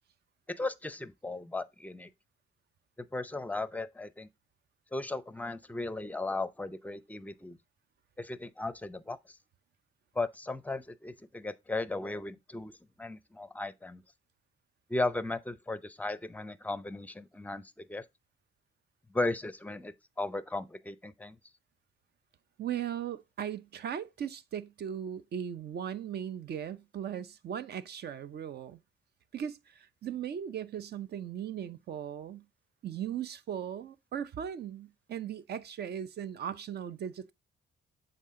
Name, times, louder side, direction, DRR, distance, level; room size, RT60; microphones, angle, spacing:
voice 1, 0.6-2.1 3.1-4.3 4.9-7.6 8.2-9.2 10.2-12.7 13.0-14.0 14.9-18.0 19.1-21.4, left 2 dB, 10° left, 0.5 m, -36 dB
voice 2, 22.6-28.8 29.3-32.4 32.8-37.3, right 9 dB, 55° right, 0.6 m, -38 dB
7.4 x 3.9 x 3.6 m
cardioid pair, 90°, 20 cm